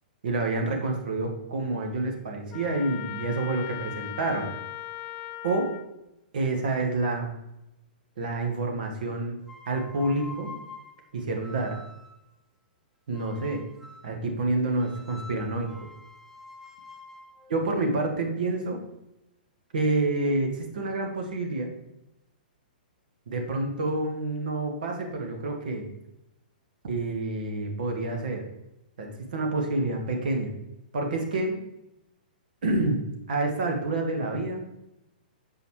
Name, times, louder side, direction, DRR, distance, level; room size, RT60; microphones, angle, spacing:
voice 1, 0.2-4.5 5.4-5.7 6.3-7.3 8.2-9.4 9.7-10.5 11.1-11.8 13.1-13.6 14.0-15.7 17.5-18.8 19.7-21.7 23.3-25.9 26.8-28.4 29.0-30.5 30.9-31.5 32.6-33.0 33.3-34.7, right 2 dB, 65° right, 2 dB, 1.4 m, -28 dB
Trumpet, 2.5-5.9, left 14 dB, 35° left, 0.3 m, -38 dB
sound 1, 9.4-12.3 13.1-14.2 14.8-18.8, left 2 dB, 10° right, 1.2 m, -47 dB
6.9 x 5.2 x 3.2 m, 0.91 s
figure-of-eight pair, 115°, 5 cm